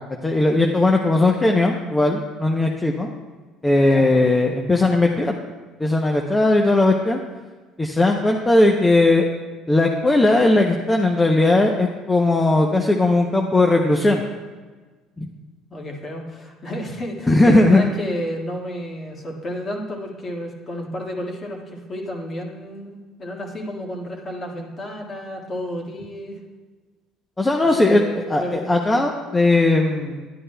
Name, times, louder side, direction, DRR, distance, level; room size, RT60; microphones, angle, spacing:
voice 1, 0.2-3.1 3.6-5.4 5.8-7.2 7.8-9.3 9.7-14.2 15.2-15.3 17.3-17.8 27.4-30.3, left 2 dB, 15° left, 2 dB, 0.6 m, -18 dB
voice 2, 15.7-26.4 27.6-28.6 28.9-29.0, equal, 35° left, 0 dB, 1.7 m, -31 dB
11.0 x 9.9 x 2.2 m, 1.4 s
supercardioid pair, 95°, 0 cm